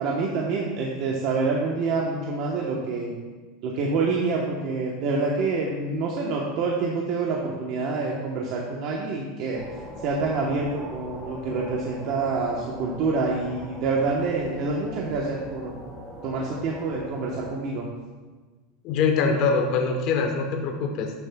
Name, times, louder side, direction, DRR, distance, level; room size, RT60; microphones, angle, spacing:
voice 1, 0.0-3.1 3.6-9.6 10.0-15.8 16.2-17.9, right 3 dB, 50° right, -2 dB, 0.9 m, -27 dB
sound 1, 9.5-17.5, equal, 5° right, 1.4 m, -41 dB
voice 2, 18.8-21.1, left 5 dB, 45° left, 3 dB, 0.9 m, -23 dB
11.5 x 7.0 x 2.2 m, 1.3 s
supercardioid pair, 155°, 0 cm